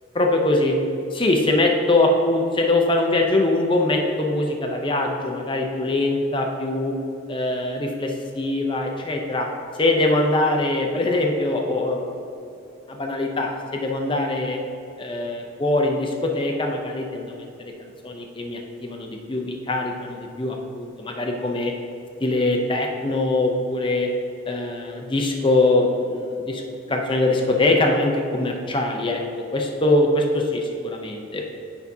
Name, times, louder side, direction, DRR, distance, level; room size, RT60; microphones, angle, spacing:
voice 1, 0.1-0.8 1.1-7.0 7.3-9.5 9.8-12.0 12.4-12.5 12.9-14.6 15.0-21.7 22.2-24.1 24.5-26.6 26.9-29.2 29.5-31.4, left 2 dB, 25° left, 2 dB, 0.6 m, -22 dB
9.4 x 5.8 x 2.7 m, 2.7 s
head